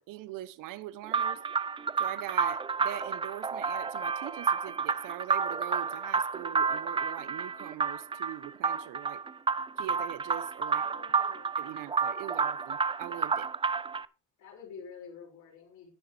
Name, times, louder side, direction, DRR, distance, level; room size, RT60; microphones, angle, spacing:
voice 1, 0.0-1.4 2.0-9.2 9.8-10.8 11.6-13.5, right 14 dB, 75° right, 1.1 m, -42 dB
sound 1, 1.1-14.1, right 5 dB, 15° right, 0.5 m, -30 dB
voice 2, 10.6-11.5 12.3-12.4 14.4-15.9, left 6 dB, 65° left, 6.3 m, -49 dB
19.0 x 6.7 x 3.5 m
cardioid pair, 115°, 32 cm